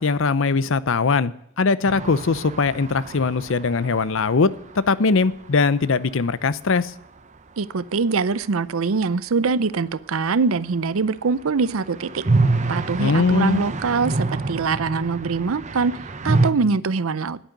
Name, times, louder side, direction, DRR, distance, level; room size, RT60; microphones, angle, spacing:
voice 1, 0.0-4.5 4.9-6.9 13.0-13.6, left 4 dB, 65° left, 17 dB, 0.6 m, -20 dB
sound 1, 1.9-5.7 5.9-6.0 6.2-6.3 11.3-16.5, right 3 dB, 35° right, 0.8 m, -26 dB
voice 2, 7.6-12.2 12.7-15.9 16.2-17.4, right 4 dB, 75° right, 18 dB, 0.6 m, -23 dB
10.0 x 9.1 x 9.0 m, 0.75 s
head